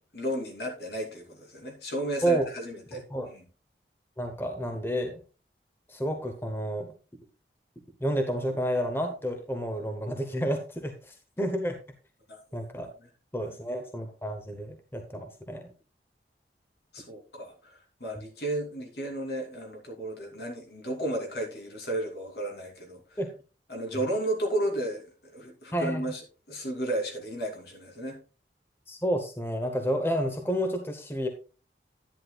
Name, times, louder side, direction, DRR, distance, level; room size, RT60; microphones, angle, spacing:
voice 1, 0.1-3.4 12.3-12.4 13.4-13.5 16.9-23.2 23.7-28.2, right 1 dB, 70° left, 1 dB, 2.9 m, -33 dB
voice 2, 4.2-5.2 5.9-6.9 8.0-11.8 12.5-12.9 13.3-15.6 23.2-23.3 25.7-26.0 28.9-31.3, equal, 15° left, 5 dB, 0.9 m, -30 dB
10.5 x 9.7 x 2.3 m, 0.34 s
head